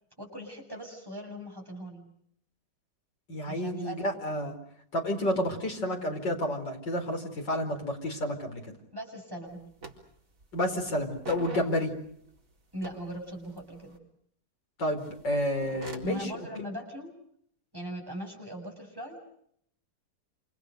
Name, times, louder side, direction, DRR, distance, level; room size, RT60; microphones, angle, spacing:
voice 1, 0.2-2.1 3.5-4.1 8.9-9.6 11.5-11.7 12.7-14.0 16.0-17.1 17.7-19.2, equal, 10° right, 1 dB, 7.6 m, -40 dB
voice 2, 3.3-4.5 4.9-8.7 10.5-11.9 14.8-16.3, left 1 dB, 80° left, 3 dB, 5.4 m, -30 dB
sound 1, 9.5-9.6 9.8-10.5 10.8-12.4 12.8-14.0 15.0-16.2, right 3 dB, 45° right, 4.4 m, -44 dB
28.0 x 28.0 x 6.6 m, 0.69 s
omnidirectional pair, 1.9 m